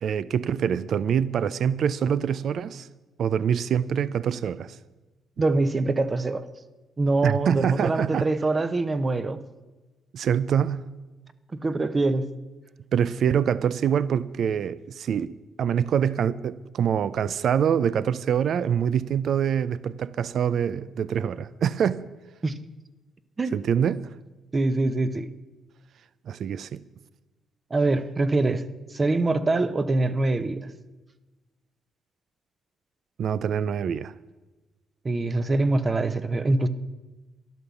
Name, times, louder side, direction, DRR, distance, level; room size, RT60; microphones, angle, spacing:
voice 1, 0.0-2.9 3.2-4.8 7.2-8.3 10.1-10.9 12.9-22.0 23.5-24.0 26.3-26.8 33.2-34.1, right 8 dB, 65° right, 0.5 m, -25 dB
voice 2, 5.4-6.4 7.0-9.4 11.6-12.3 22.4-22.6 23.4-23.5 24.5-25.3 27.7-28.6 28.9-30.6 35.0-36.7, right 2 dB, 30° right, 0.9 m, -24 dB
12.0 x 11.0 x 7.1 m
cardioid pair, 90°, 0 cm